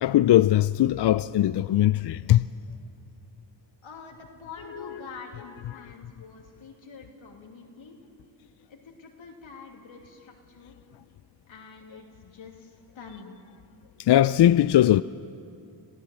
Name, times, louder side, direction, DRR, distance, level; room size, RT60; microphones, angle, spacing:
voice 1, 0.0-2.5 14.1-15.0, left 13 dB, 60° left, 0.5 m, -20 dB
voice 2, 3.8-8.0 8.7-10.8 11.5-13.3, left 4 dB, 90° left, 2.7 m, -46 dB
26.5 x 15.5 x 7.7 m
cardioid pair, 45°, 46 cm